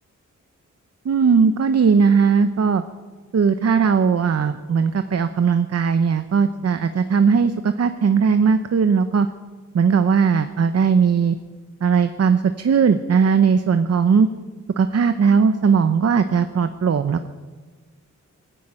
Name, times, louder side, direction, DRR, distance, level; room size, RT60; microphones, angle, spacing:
voice 1, 1.0-2.8 3.3-9.3 9.7-11.4 11.8-14.3 14.8-17.3, right 6 dB, 55° right, 9 dB, 0.8 m, -18 dB
19.5 x 15.5 x 8.9 m, 1.4 s
wide cardioid pair, 160°, 30 cm